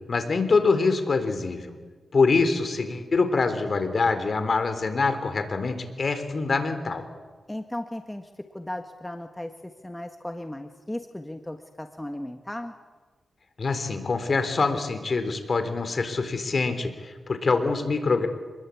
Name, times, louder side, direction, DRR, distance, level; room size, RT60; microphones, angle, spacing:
voice 1, 0.1-1.7 2.1-7.0 13.6-18.3, left 4 dB, 50° left, 9 dB, 3.9 m, -25 dB
voice 2, 7.5-12.7, left 1 dB, 10° left, 5 dB, 1.6 m, -36 dB
27.5 x 21.5 x 8.7 m, 1.4 s
cardioid pair, 85°, 0 cm